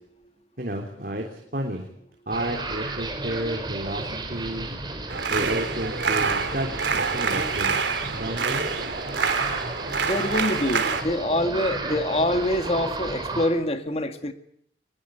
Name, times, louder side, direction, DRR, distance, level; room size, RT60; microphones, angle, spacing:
voice 1, 0.6-1.9 2.3-4.7 5.3-7.8 8.1-8.6, right 1 dB, 55° right, 1 dB, 3.4 m, -31 dB
sound 1, 2.3-13.5, right 2 dB, 25° right, 4.4 m, -33 dB
sound 2, 5.1-11.0, right 5 dB, 90° right, 3.2 m, -26 dB
voice 2, 10.0-14.3, left 1 dB, 35° left, 8 dB, 2.0 m, -25 dB
23.5 x 21.0 x 9.2 m, 0.69 s
head